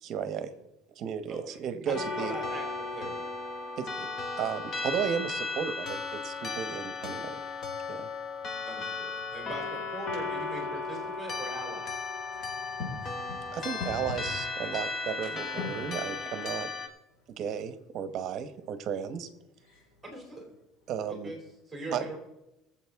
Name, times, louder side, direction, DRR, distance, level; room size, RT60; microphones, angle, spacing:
voice 1, 0.0-0.5 1.0-2.4 3.8-4.1 4.4-7.4 7.9-8.1 13.5-16.7 17.4-19.3 20.9-21.4 21.9-22.2, right 8 dB, 45° right, 11 dB, 0.9 m, -34 dB
sound 1, 1.9-16.9, left 3 dB, 35° left, 1.2 m, -35 dB
voice 2, 1.9-3.2 8.7-11.9 20.0-20.5 21.1-21.4 21.7-22.2, right 1 dB, 5° right, 2 dB, 2.9 m, -41 dB
voice 3, 12.3-14.8 15.2-15.3 15.6-16.1 19.6-19.9, left 3 dB, 65° left, -1 dB, 4.9 m, -41 dB
20.5 x 7.4 x 3.5 m, 0.94 s
cardioid pair, 155°, 0 cm